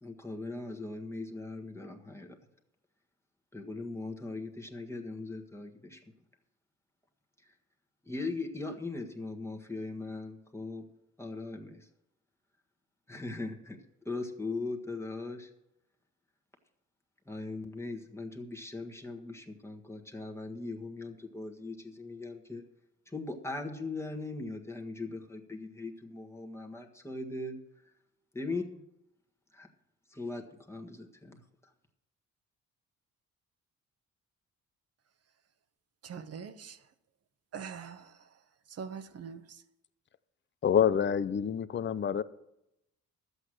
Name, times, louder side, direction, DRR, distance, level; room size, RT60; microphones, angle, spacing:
voice 1, 0.0-2.4 3.5-6.0 8.0-10.9 11.2-11.9 13.1-13.8 14.0-15.5 17.2-22.6 23.1-27.6 28.3-28.6 29.5-29.7 30.1-31.7, left 3 dB, 10° left, 1.6 m, -39 dB
voice 2, 36.0-36.8 37.5-38.1 38.7-39.6, right 6 dB, 55° right, 1.1 m, -43 dB
voice 3, 40.6-42.2, left 8 dB, 40° left, 0.6 m, -27 dB
11.5 x 8.1 x 6.4 m
cardioid pair, 90°, 30 cm